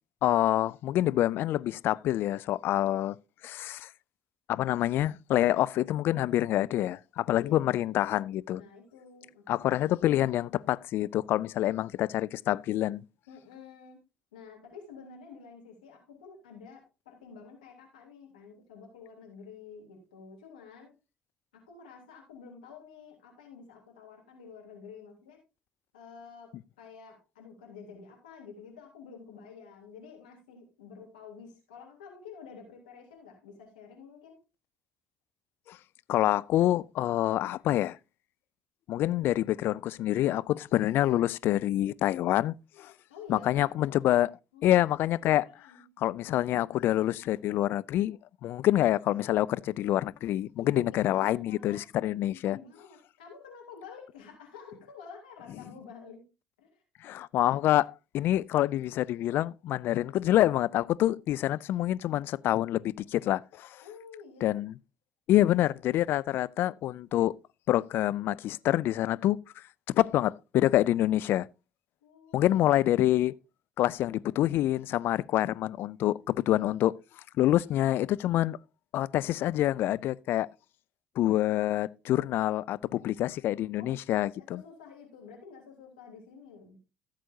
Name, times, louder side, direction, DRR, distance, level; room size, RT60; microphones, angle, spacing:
voice 1, 0.2-3.2 3.4-3.9 4.5-8.6 9.5-13.0 35.7-35.8 36.1-38.0 38.9-42.9 43.3-44.3 44.6-45.5 46.0-52.6 57.0-63.8 64.4-64.8 65.3-67.3 67.7-69.6 69.9-71.5 72.3-73.3 73.8-76.9 77.4-78.6 78.9-80.5 81.2-84.6, left 14 dB, 60° left, 0.4 m, -27 dB
voice 2, 7.3-7.9 8.5-9.8 13.3-14.0 14.3-20.9 21.5-25.4 25.9-34.4 43.1-43.8 44.5-44.8 45.4-45.8 50.6-51.8 52.3-56.2 56.6-56.8 63.8-64.6 72.0-73.1 82.9-83.4 83.8-84.0 84.3-86.8, left 6 dB, 80° left, 3.2 m, -50 dB
15.5 x 7.6 x 2.7 m
figure-of-eight pair, 50°, 4 cm